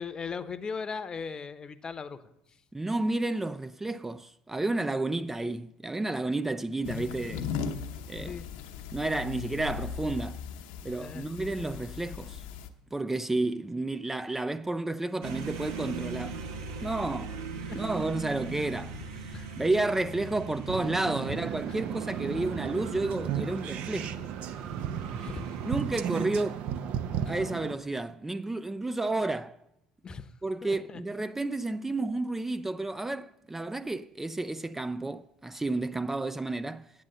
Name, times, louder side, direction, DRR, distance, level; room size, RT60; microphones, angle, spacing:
voice 1, 0.0-2.2 8.3-8.5 11.0-11.3 17.7-17.9 18.9-19.0 19.3-19.5 21.3-21.4 22.3-22.5 25.2-25.6 27.2-27.3 30.0-30.3 30.6-31.0, left 5 dB, 35° left, 0.8 m, -38 dB
voice 2, 2.7-7.5 8.1-8.4 8.9-10.4 10.8-12.5 12.9-16.4 16.8-17.4 17.7-24.2 25.6-26.6 27.3-29.6 30.4-36.9, right 2 dB, 15° right, 0.4 m, -31 dB
sound 1, 6.8-12.7, left 6 dB, 75° left, 0.8 m, -38 dB
sound 2, 15.2-26.9, right 4 dB, 80° right, 1.2 m, -40 dB
sound 3, 20.7-27.7, right 9 dB, 65° right, 0.7 m, -35 dB
8.9 x 7.7 x 6.7 m
hypercardioid pair, 70°, 2 cm